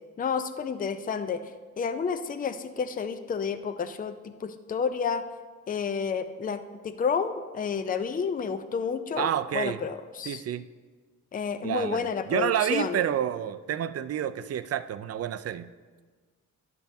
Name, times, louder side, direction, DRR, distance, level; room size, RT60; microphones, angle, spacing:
voice 1, 0.2-1.4 1.8-5.2 5.7-10.4 11.3-13.0, left 6 dB, 25° left, 9 dB, 0.5 m, -30 dB
voice 2, 9.2-9.8 10.2-10.6 11.6-15.7, right 10 dB, 45° right, 12 dB, 0.4 m, -29 dB
11.5 x 6.9 x 2.7 m, 1.4 s
cardioid pair, 90°, 33 cm